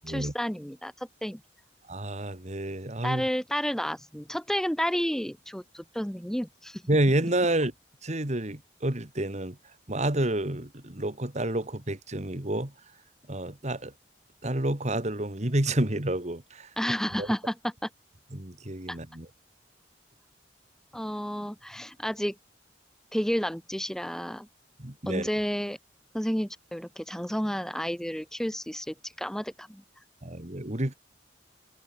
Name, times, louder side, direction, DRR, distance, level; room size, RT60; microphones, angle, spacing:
voice 1, 0.1-1.4 3.0-6.8 16.8-17.5 17.8-17.9 18.9-19.0 20.9-22.3 23.1-24.5 25.1-25.8 26.1-29.8, equal, 5° left, 1.2 m, -31 dB
voice 2, 1.9-3.2 6.9-7.7 8.0-9.6 9.9-12.7 13.3-13.9 14.4-16.7 17.2-17.3 18.3-19.3 24.8-25.3 30.2-30.9, right 1 dB, 40° right, 2.3 m, -29 dB
head